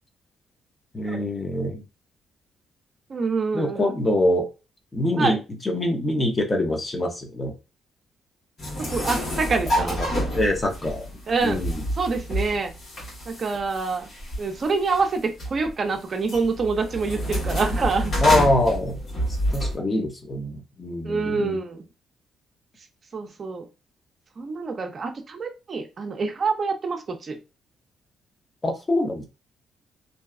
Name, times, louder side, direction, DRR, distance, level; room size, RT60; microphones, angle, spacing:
voice 1, 0.9-1.8 3.5-4.5 4.9-5.4 5.6-7.5 9.7-9.9 10.3-11.1 11.4-11.8 18.2-19.0 19.5-21.6 28.6-29.2, left 1 dB, 25° left, 3 dB, 0.6 m, -24 dB
voice 2, 3.1-3.9 5.2-5.4 8.8-10.0 11.3-11.6 11.9-12.7 13.3-14.1 14.4-18.1 21.0-21.9 23.1-23.6 24.4-27.4, right 4 dB, 45° right, 5 dB, 0.5 m, -26 dB
sound 1, 8.6-19.7, equal, 55° left, 1.3 m, -29 dB
2.6 x 2.2 x 2.3 m, 0.29 s
cardioid pair, 90°, 0 cm